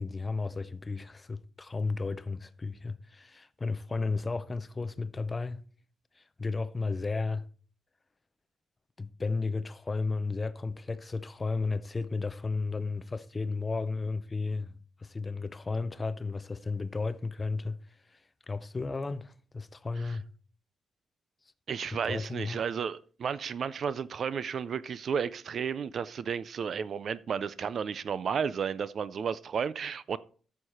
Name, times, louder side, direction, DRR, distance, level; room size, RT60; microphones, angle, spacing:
voice 1, 0.0-5.6 6.2-7.4 9.0-20.3 22.0-22.6, left 3 dB, 20° left, 0.5 m, -34 dB
voice 2, 21.7-30.2, right 7 dB, 40° right, 0.4 m, -33 dB
13.5 x 6.5 x 4.2 m
wide cardioid pair, 180°, 0 cm